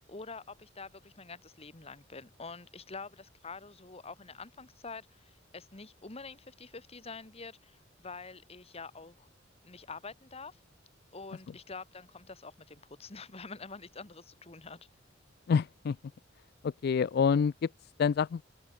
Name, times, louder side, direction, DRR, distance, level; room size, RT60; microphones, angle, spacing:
voice 1, 0.0-9.3 9.6-10.6 11.1-14.8, left 4 dB, 35° left, 1.6 m, -46 dB
voice 2, 15.5-16.0 16.6-17.7 18.0-18.4, left 6 dB, 55° left, 0.3 m, -27 dB
open air
head